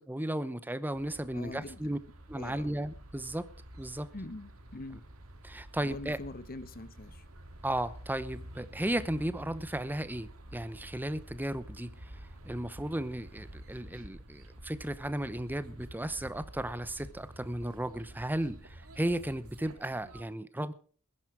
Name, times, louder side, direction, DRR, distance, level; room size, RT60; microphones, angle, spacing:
voice 1, 0.1-2.0 2.3-3.5 3.8-4.1 5.4-6.2 7.6-20.7, right 1 dB, 10° right, 0.8 m, -35 dB
sound 1, 0.9-20.2, right 1 dB, 75° right, 2.2 m, -49 dB
voice 2, 1.3-1.9 2.3-2.7 4.1-5.0 5.8-7.2, left 2 dB, 45° left, 0.9 m, -44 dB
20.0 x 11.0 x 4.9 m
head